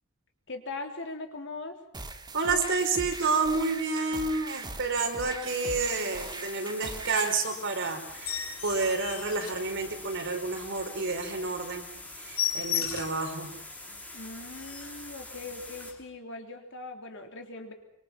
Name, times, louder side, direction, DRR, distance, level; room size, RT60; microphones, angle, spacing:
voice 1, 0.5-1.8 14.1-17.7, left 3 dB, 60° left, 5 dB, 3.4 m, -40 dB
sound 1, 1.9-7.3, right 2 dB, 20° right, 2.0 m, -41 dB
voice 2, 2.3-11.9 12.1-13.5, right 3 dB, 60° right, 4 dB, 4.9 m, -29 dB
sound 2, 5.4-15.9, left 2 dB, 5° left, 3.4 m, -45 dB
sound 3, 8.1-10.2 10.7-10.8 11.2-11.3 11.6-11.7 12.0-13.3 13.8-13.9 14.2-14.3 14.5-15.1 15.8-16.0, left 9 dB, 90° left, 7.1 m, -34 dB
25.5 x 25.0 x 5.9 m, 0.77 s
head